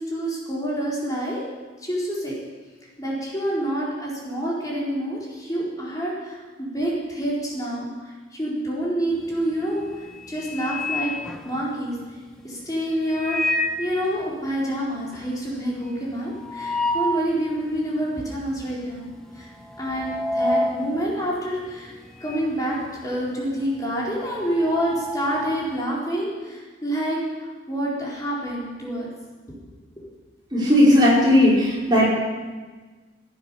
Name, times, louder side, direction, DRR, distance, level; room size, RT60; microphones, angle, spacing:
voice 1, 0.0-1.4 1.8-2.3 3.0-11.1 11.4-12.0 12.4-19.0 19.3-19.5 19.8-21.9 22.2-29.1 29.5-29.6, equal, 20° left, -6 dB, 4.1 m, -27 dB
sound 1, 9.2-9.5 9.9-12.0 13.0-13.9 14.3-14.4 14.6-14.7 15.1-17.3 17.8-17.9 18.7-19.0 19.2-22.5 22.8-25.8, left 1 dB, 5° left, 1.1 m, -29 dB
voice 2, 30.5-32.0, left 1 dB, 25° right, -6 dB, 5.2 m, -16 dB
17.0 x 10.5 x 7.1 m, 1.3 s
head